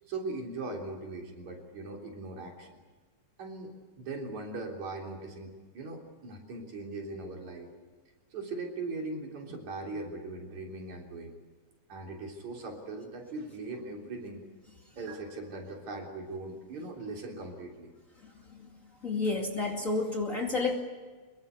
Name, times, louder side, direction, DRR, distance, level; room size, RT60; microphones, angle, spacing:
voice 1, 0.0-2.8 3.4-3.7 4.0-7.7 8.3-11.4 11.9-14.4 15.0-17.9, right 3 dB, 70° right, 1 dB, 4.9 m, -40 dB
voice 2, 19.0-20.8, left 3 dB, 25° left, 1 dB, 2.6 m, -30 dB
25.0 x 22.0 x 8.3 m, 1.3 s
omnidirectional pair, 3.4 m